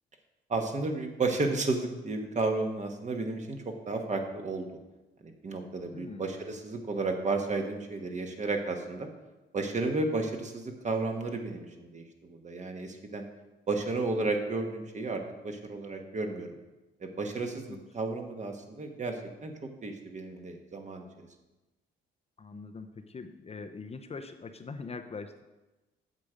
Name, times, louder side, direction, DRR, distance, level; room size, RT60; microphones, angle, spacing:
voice 1, 0.5-4.7 5.2-9.1 9.5-13.2 13.7-16.5 17.0-19.5 19.8-21.3, right 3 dB, 35° right, 4 dB, 1.4 m, -33 dB
voice 2, 5.9-6.2 17.7-17.8 22.4-25.4, left 4 dB, 30° left, 6 dB, 0.6 m, -42 dB
8.2 x 6.7 x 5.0 m, 1.1 s
cardioid pair, 90°, 20 cm